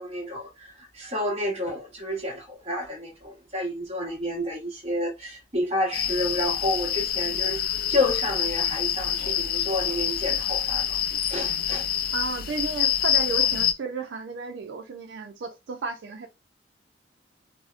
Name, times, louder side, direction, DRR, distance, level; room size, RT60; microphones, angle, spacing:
voice 1, 0.0-11.0 11.3-11.9, left 1 dB, 35° right, 1.1 m, -30 dB
sound 1, 5.9-13.7, left 9 dB, 55° left, 0.3 m, -26 dB
voice 2, 12.1-16.3, right 4 dB, 85° right, 0.4 m, -33 dB
2.7 x 2.0 x 2.4 m
head